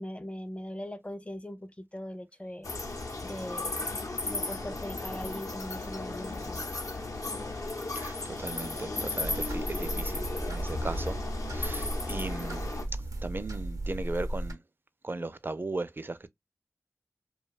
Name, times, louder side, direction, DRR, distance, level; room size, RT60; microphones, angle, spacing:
voice 1, 0.0-2.7 3.2-3.8 4.2-6.7, left 1 dB, 20° left, 0.5 m, -40 dB
sound 1, 2.6-12.8, left 2 dB, 75° left, 0.6 m, -35 dB
voice 2, 8.0-11.2 11.5-12.6 13.2-14.6 15.0-16.3, right 2 dB, 40° right, 0.4 m, -37 dB
sound 2, 9.2-14.5, right 1 dB, 85° right, 0.6 m, -35 dB
2.6 x 2.2 x 2.3 m
wide cardioid pair, 45°, 6 cm